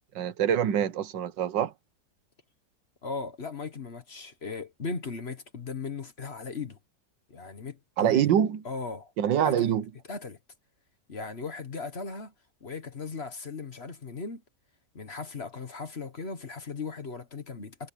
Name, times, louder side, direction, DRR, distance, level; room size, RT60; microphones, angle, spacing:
voice 1, 0.1-1.7 8.0-8.6 9.2-9.8, right 9 dB, 90° right, 1.7 m, -25 dB
voice 2, 3.0-6.8 7.3-8.2 8.6-9.1 9.4-9.7 10.1-10.4 11.1-12.3 12.6-14.4 14.9-17.9, left 4 dB, 40° left, 1.6 m, -37 dB
omnidirectional pair, 1.9 m